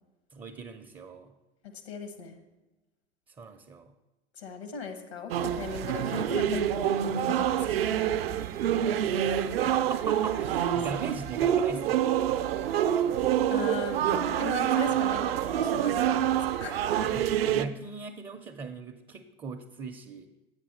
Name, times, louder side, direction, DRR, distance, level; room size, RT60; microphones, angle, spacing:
voice 1, 0.3-1.4 3.3-3.9 9.0-12.0 17.1-20.3, right 4 dB, 15° right, 5 dB, 0.4 m, -40 dB
voice 2, 1.6-2.4 4.4-7.8 13.5-17.1, left 5 dB, 75° left, 7 dB, 1.2 m, -38 dB
sound 1, 5.3-17.6, right 10 dB, 65° right, 0.5 m, -27 dB
8.4 x 6.5 x 4.2 m, 1.1 s
figure-of-eight pair, 75°, 31 cm